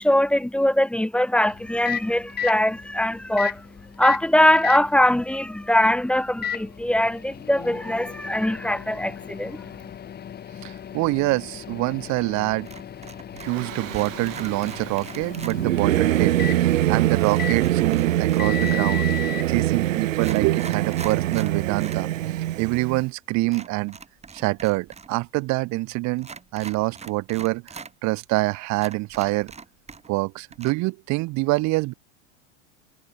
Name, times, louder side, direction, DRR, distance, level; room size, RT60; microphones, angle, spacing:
voice 1, 0.0-9.7, left 1 dB, 5° left, 0.7 m, -22 dB
Microwave oven, 1.4-19.5, left 9 dB, 25° left, 1.5 m, -36 dB
voice 2, 10.6-12.7 13.3-19.1 19.5-22.1 22.6-24.0 24.3-27.6 28.0-29.5 30.1-31.9, right 22 dB, 45° right, 1.2 m, -25 dB
sound 1, 12.7-13.6 13.9-15.6 17.2-19.0 19.6-19.7 20.1-22.0 22.4-22.5 23.5-25.1 25.4-25.5 26.2-27.9 28.4-28.5 28.7-30.2 30.5-30.7, right 5 dB, 15° right, 3.3 m, -42 dB
Singing / Musical instrument, 13.5-23.0, right 14 dB, 85° right, 0.9 m, -24 dB
hypercardioid pair, 105°, 38 cm